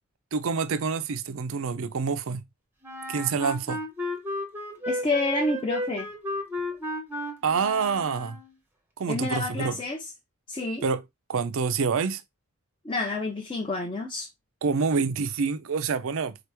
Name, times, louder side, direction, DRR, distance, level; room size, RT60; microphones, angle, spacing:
voice 1, 0.3-2.4 3.1-3.8 7.4-8.4 9.0-9.8 10.8-11.0 11.3-12.2 14.6-16.4, right 5 dB, 60° right, 0.5 m, -27 dB
Wind instrument woodwind instrument, 2.8-8.6, equal, 10° right, 0.7 m, -34 dB
voice 2, 4.9-6.1 9.1-10.0 10.5-10.9 12.8-14.3, left 2 dB, 25° left, 0.6 m, -29 dB
4.0 x 3.0 x 3.3 m
head